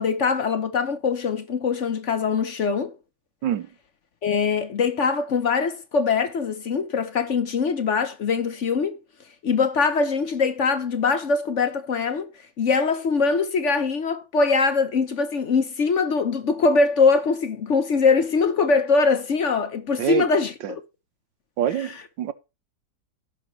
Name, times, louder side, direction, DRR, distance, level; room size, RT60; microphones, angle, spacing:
voice 1, 0.0-3.0 4.2-9.0 9.4-12.3 12.6-20.8 21.8-22.0, left 4 dB, 55° left, 0.9 m, -22 dB
voice 2, 21.6-22.3, right 11 dB, 70° right, 1.5 m, -25 dB
16.5 x 6.0 x 3.1 m
omnidirectional pair, 2.2 m